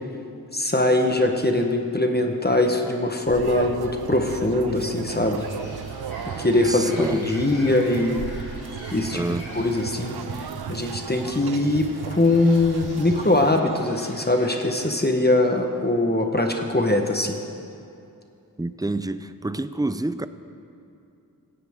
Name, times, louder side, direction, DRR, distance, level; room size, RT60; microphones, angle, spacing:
voice 1, 0.5-5.4 6.4-8.2 8.9-9.2 9.5-17.4, left 2 dB, 25° left, 3 dB, 1.2 m, -22 dB
sound 1, 3.3-13.6, right 8 dB, 90° right, 0.5 m, -35 dB
Bird, 5.4-15.0, left 1 dB, 80° left, 4.2 m, -44 dB
voice 2, 6.6-7.2 9.1-9.5 18.6-20.3, right 2 dB, 10° right, 12 dB, 0.5 m, -28 dB
17.0 x 17.0 x 3.7 m, 2.6 s
wide cardioid pair, 50°, 36 cm